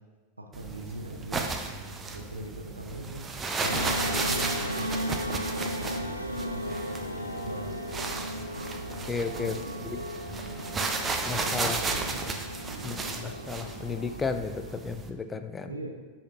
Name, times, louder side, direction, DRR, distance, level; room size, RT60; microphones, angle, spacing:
voice 1, 0.4-3.3 3.9-5.2 5.8-8.2 9.4-9.9 10.5-10.8 11.4-12.2 12.7-13.0 15.7-15.9, right 1 dB, 80° right, 3 dB, 0.9 m, -42 dB
sound 1, 0.5-15.1, right 4 dB, 20° right, 0.7 m, -34 dB
sound 2, 3.6-14.9, left 1 dB, 90° left, 0.5 m, -36 dB
voice 2, 9.1-9.6 11.3-11.8 12.8-15.7, left 5 dB, 15° left, 9 dB, 0.5 m, -33 dB
11.5 x 5.8 x 2.6 m, 1.3 s
figure-of-eight pair, 90°, 0 cm